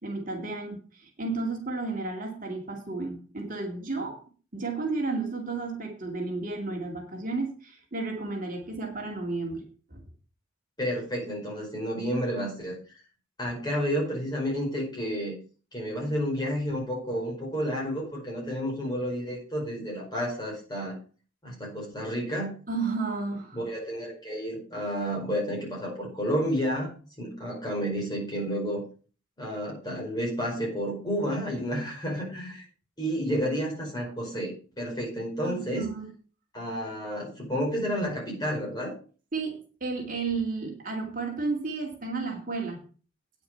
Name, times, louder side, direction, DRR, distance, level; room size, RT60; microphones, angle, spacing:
voice 1, 0.0-4.2 4.5-9.6 9.9-10.0 22.7-23.6 35.4-36.1 39.3-42.8, right 3 dB, 40° right, 1 dB, 2.3 m, -32 dB
voice 2, 10.8-12.8 13.4-15.3 15.7-21.0 21.4-22.5 23.5-28.8 29.4-32.6 33.0-35.9 36.5-39.0, equal, 20° left, -3 dB, 4.9 m, -31 dB
9.4 x 6.9 x 6.7 m, 0.39 s
head